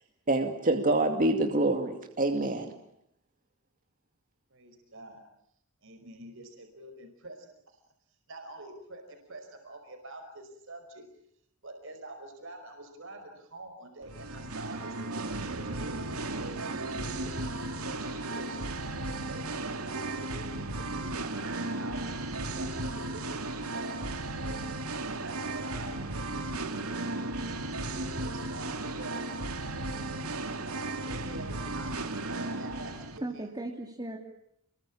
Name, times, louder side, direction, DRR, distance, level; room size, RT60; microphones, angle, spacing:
voice 1, 0.3-2.7, right 2 dB, 40° right, 5 dB, 2.4 m, -26 dB
voice 2, 4.5-5.2 5.8-7.5 8.3-11.1 11.6-17.4 17.8-22.0 22.4-24.0 24.4-24.6 25.2-26.9 28.2-29.2 29.9-30.4 31.0-33.3, right 2 dB, 60° right, 5 dB, 5.2 m, -46 dB
Singing, 14.0-33.2, right 2 dB, 85° right, 2.7 m, -35 dB
voice 3, 32.9-34.2, right 1 dB, 20° right, 1 dB, 3.1 m, -38 dB
30.0 x 22.0 x 8.7 m, 0.75 s
head